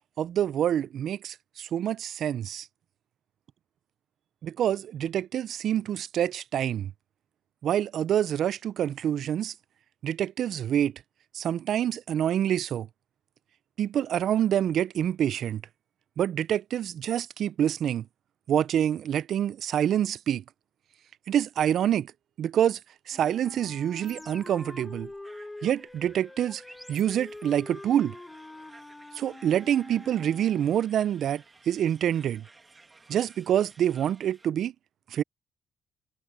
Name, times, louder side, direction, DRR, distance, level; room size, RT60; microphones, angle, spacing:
voice 1, 0.2-2.7 4.4-6.9 7.6-9.5 10.0-10.9 11.3-12.9 13.8-15.6 16.2-18.0 18.5-20.4 21.3-22.1 22.4-22.8 23.1-25.1 25.6-26.6 26.9-28.1 29.2-32.4 33.1-34.7 35.1-35.2, right 10 dB, 70° right, 0.4 m, -26 dB
Wind instrument woodwind instrument, 23.1-30.8, left 2 dB, 15° left, 1.3 m, -45 dB
sound 1, 24.1-27.7, right 1 dB, 5° right, 1.6 m, -52 dB
sound 2, 25.2-34.5, right 3 dB, 25° right, 1.9 m, -57 dB
cardioid pair, 90°, 0 cm